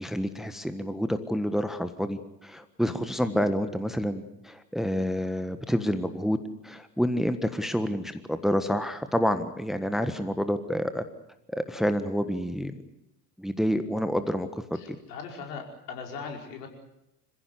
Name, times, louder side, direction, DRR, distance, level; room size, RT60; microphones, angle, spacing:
voice 1, 0.0-6.4 6.6-11.0 11.5-12.7 13.4-14.5 14.9-15.0, equal, ahead, 10 dB, 1.4 m, -28 dB
voice 2, 14.7-16.7, left 5 dB, 70° left, 2 dB, 5.1 m, -40 dB
27.0 x 16.0 x 8.4 m, 0.83 s
figure-of-eight pair, 70°, 49 cm